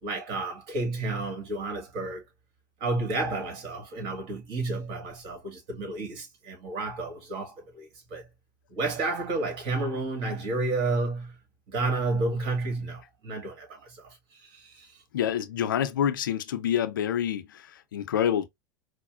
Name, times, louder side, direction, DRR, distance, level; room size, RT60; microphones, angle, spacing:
voice 1, 0.0-2.2 2.8-8.3 8.7-11.4 11.7-14.2 14.4-14.9, right 3 dB, 55° right, 1.7 m, -31 dB
voice 2, 15.1-18.5, left 9 dB, 90° left, 0.5 m, -27 dB
4.9 x 2.1 x 2.3 m
hypercardioid pair, 100°, 11 cm